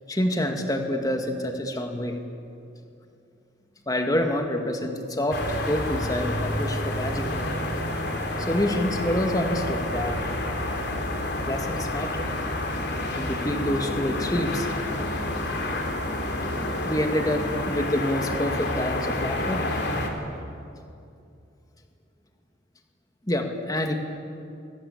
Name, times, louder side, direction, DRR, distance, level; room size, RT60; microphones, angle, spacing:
voice 1, 0.1-2.2 3.9-7.5 8.4-10.2 11.5-12.3 13.1-14.7 16.9-19.7 23.3-23.9, left 1 dB, 20° left, 4 dB, 2.2 m, -27 dB
sound 1, 5.3-20.1, left 1 dB, 60° left, 3.8 m, -29 dB
28.0 x 24.0 x 8.7 m, 2.5 s
head